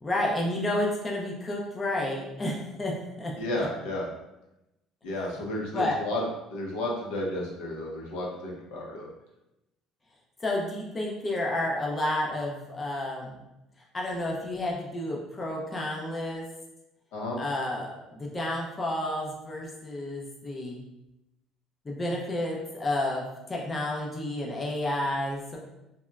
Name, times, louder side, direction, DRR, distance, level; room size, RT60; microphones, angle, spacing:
voice 1, 0.0-3.3 5.7-6.0 10.4-13.4 13.9-16.5 17.4-20.8 21.9-25.6, left 1 dB, 15° left, -2 dB, 0.4 m, -30 dB
voice 2, 3.4-4.1 5.0-9.1 17.1-17.4, left 1 dB, 90° left, -2 dB, 0.6 m, -32 dB
2.9 x 2.1 x 2.3 m, 0.92 s
cardioid pair, 160°, 0 cm